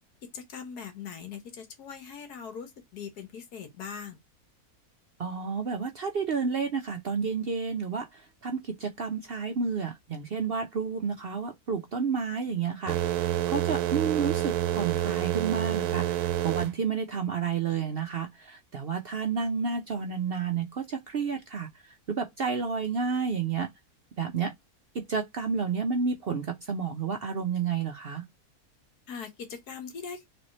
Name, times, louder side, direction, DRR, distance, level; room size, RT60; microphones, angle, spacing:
voice 1, 0.3-4.2 29.1-30.3, left 6 dB, 85° left, 1.7 m, -41 dB
voice 2, 5.2-23.7 24.2-24.5 24.9-28.2, right 5 dB, 60° right, 0.6 m, -31 dB
sound 1, 12.9-16.7, right 12 dB, 80° right, 1.1 m, -28 dB
3.5 x 3.2 x 3.9 m
omnidirectional pair, 1.6 m